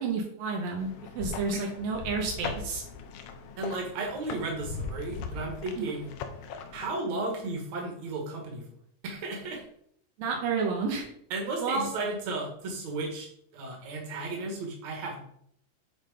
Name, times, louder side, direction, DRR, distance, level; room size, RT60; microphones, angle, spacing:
voice 1, 0.0-2.8 5.8-5.9 10.2-11.1 11.6-11.9, right 4 dB, 80° right, 1 dB, 2.8 m, -30 dB
sound 1, 0.8-6.9, left 5 dB, 75° left, 1.7 m, -39 dB
voice 2, 3.6-6.1 6.7-8.6 9.0-9.6 11.3-15.2, right 3 dB, 55° right, 0 dB, 2.9 m, -34 dB
10.5 x 4.0 x 5.1 m, 0.70 s
omnidirectional pair, 4.0 m